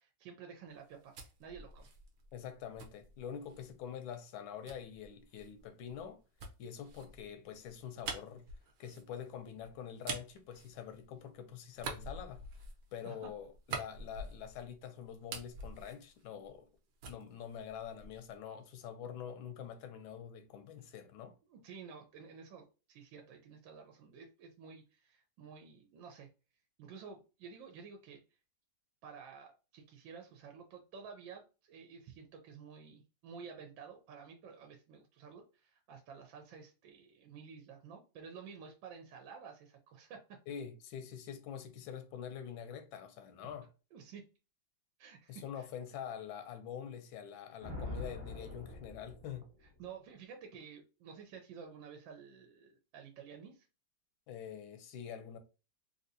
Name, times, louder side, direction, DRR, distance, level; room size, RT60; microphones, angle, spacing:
voice 1, 0.0-1.9 13.0-13.3 21.5-26.3 26.8-28.2 29.0-40.4 43.9-44.2 45.0-45.7 49.6-53.7, right 6 dB, 85° right, 1.3 m, -52 dB
sound 1, 0.7-3.8 4.7-11.3 11.7-14.8 15.1-16.7 17.0-18.3, right 4 dB, 65° right, 1.0 m, -47 dB
voice 2, 2.3-6.2 6.6-8.4 8.8-12.4 12.9-16.7 17.1-21.4 40.5-43.7 45.3-49.5 54.3-55.4, left 8 dB, 85° left, 1.4 m, -45 dB
Thunder, 47.6-49.8, left 2 dB, 30° right, 1.1 m, -44 dB
3.4 x 2.7 x 2.6 m
omnidirectional pair, 2.1 m